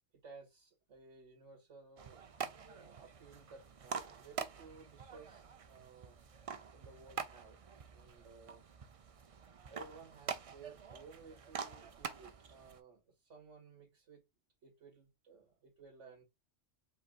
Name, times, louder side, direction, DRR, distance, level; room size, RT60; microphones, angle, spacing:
voice 1, 0.2-2.2 2.8-6.2 6.7-7.6 7.9-8.6 9.7-14.2 14.6-16.2, right 4 dB, 80° right, 2.3 m, -57 dB
sound 1, 2.0-12.8, right 6 dB, 45° right, 0.4 m, -46 dB
5.7 x 4.0 x 2.3 m
omnidirectional pair, 1.2 m